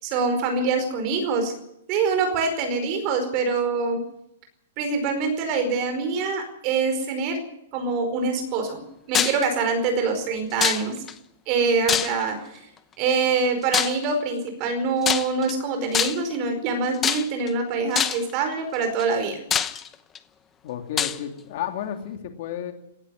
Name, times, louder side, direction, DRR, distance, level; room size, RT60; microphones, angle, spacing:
voice 1, 0.0-1.5 1.9-4.0 4.8-7.4 7.7-8.8 9.1-10.9 11.5-12.6 13.0-19.4, right 4 dB, 25° right, 6 dB, 4.9 m, -24 dB
sound 1, 9.1-9.5 10.6-11.1 11.9-12.4 13.7-14.0 15.0-15.5 15.9-16.3 17.0-17.5 17.9-18.3 19.0-19.1 19.5-20.2 21.0-21.2, left 8 dB, 15° left, 0.9 m, -24 dB
voice 2, 20.6-22.7, left 9 dB, 40° left, 6 dB, 2.6 m, -32 dB
18.5 x 15.5 x 9.7 m, 0.80 s
hypercardioid pair, 175°, 0 cm